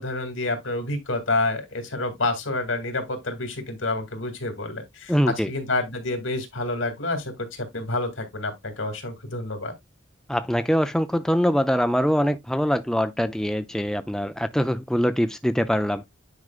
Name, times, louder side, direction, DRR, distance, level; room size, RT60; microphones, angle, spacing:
voice 1, 0.0-9.7, left 2 dB, 85° left, 2.3 m, -28 dB
voice 2, 5.1-5.5 10.3-16.0, equal, 5° left, 0.4 m, -23 dB
9.6 x 5.1 x 2.4 m
head